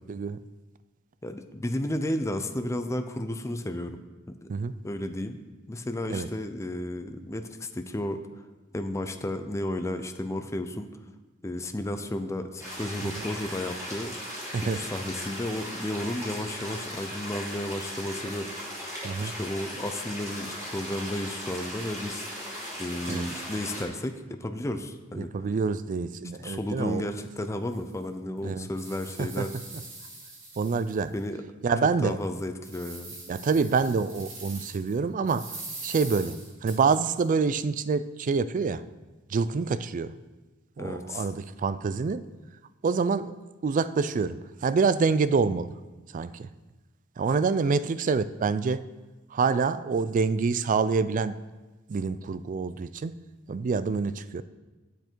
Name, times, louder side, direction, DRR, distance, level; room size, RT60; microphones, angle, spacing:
voice 1, 0.1-0.4 4.5-4.8 6.1-6.3 13.0-13.2 14.5-14.9 19.0-19.3 23.1-23.3 25.1-27.1 28.4-28.7 29.2-29.5 30.6-31.1 31.6-32.2 33.3-35.5 35.8-38.8 39.3-40.1 40.8-42.2 42.8-43.4 43.6-45.7 46.1-46.5 47.2-48.8 49.3-51.4 51.9-53.2 53.5-54.4, right 5 dB, 40° right, 15 dB, 0.3 m, -26 dB
voice 2, 1.2-4.0 4.3-4.5 4.8-5.4 5.7-8.2 8.7-10.9 11.4-14.1 14.6-18.5 19.2-22.2 22.8-25.3 26.4-29.6 31.1-31.4 32.0-33.1 40.8-41.3, left 1 dB, 15° left, 7 dB, 0.5 m, -33 dB
sound 1, 12.6-23.8, equal, 15° right, 2.9 m, -38 dB
sound 2, 27.1-27.2 27.7-27.8 28.4-31.2 31.6-31.7 32.2-34.9 35.3-37.2, right 3 dB, 70° right, 2.6 m, -43 dB
9.0 x 7.9 x 4.5 m, 1.2 s
head